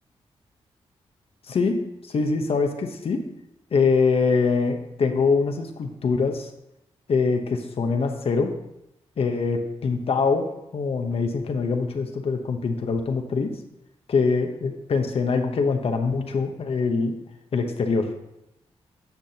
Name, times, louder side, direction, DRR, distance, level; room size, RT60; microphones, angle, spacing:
voice 1, 1.5-1.8 2.0-3.2 3.7-6.5 7.1-8.5 9.2-13.5 14.1-17.2 17.5-18.1, left 4 dB, 60° left, 5 dB, 0.9 m, -23 dB
10.5 x 6.0 x 2.9 m, 0.86 s
cardioid pair, 70°, 11 cm